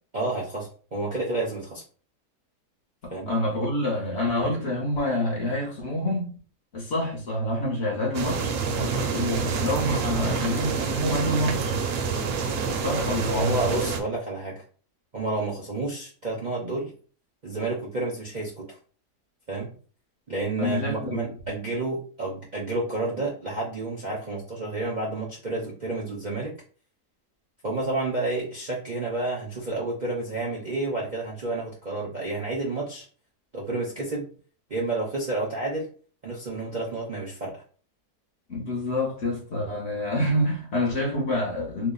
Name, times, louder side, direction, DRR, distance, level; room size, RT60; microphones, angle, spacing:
voice 1, 0.1-1.8 3.1-3.3 13.3-14.6 15.1-16.9 17.4-18.8 19.5-19.7 20.3-26.5 27.6-33.1 33.5-34.2 34.7-35.9 36.2-37.6, right 2 dB, 45° right, 0.6 m, -30 dB
voice 2, 3.0-6.3 6.7-8.5 8.8-11.7 12.8-13.5 20.6-21.2 38.5-41.9, left 1 dB, 50° left, 0.9 m, -27 dB
sound 1, 8.1-14.0, right 5 dB, 75° right, 1.1 m, -27 dB
3.0 x 2.1 x 3.8 m
omnidirectional pair, 1.7 m